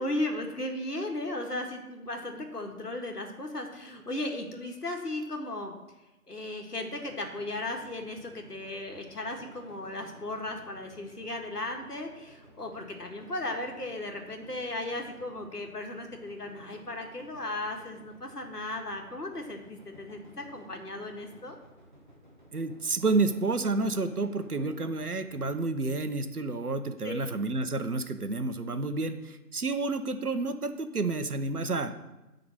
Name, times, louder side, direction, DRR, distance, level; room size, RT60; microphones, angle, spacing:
voice 1, 0.0-5.7 6.3-21.6 27.0-27.3, left 1 dB, 80° left, 3 dB, 1.8 m, -36 dB
sound 1, 6.9-25.6, equal, 30° right, 1.0 m, -55 dB
voice 2, 22.5-31.9, right 3 dB, 75° right, 9 dB, 1.0 m, -30 dB
10.0 x 3.9 x 7.4 m, 1.0 s
figure-of-eight pair, 165°, 46 cm